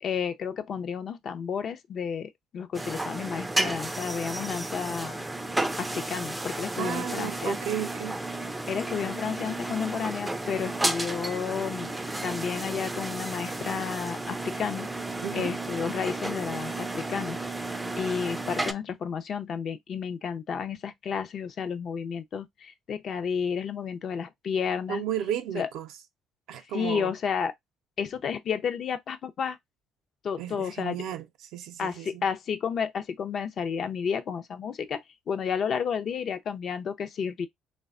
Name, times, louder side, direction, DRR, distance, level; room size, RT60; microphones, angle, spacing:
voice 1, 0.0-5.3 5.8-7.6 8.7-11.9 12.2-14.9 15.3-17.4 18.0-25.0 25.5-25.7 26.7-27.5 28.0-29.6 30.2-31.0 31.8-37.5, left 7 dB, 55° left, 0.5 m, -31 dB
sound 1, 2.7-18.7, right 2 dB, 10° right, 0.4 m, -33 dB
voice 2, 6.8-8.2 15.2-15.5 24.9-25.9 26.5-27.1 30.4-31.3 31.5-32.2, right 10 dB, 75° right, 0.4 m, -33 dB
3.3 x 2.1 x 2.4 m
supercardioid pair, 70°, 0 cm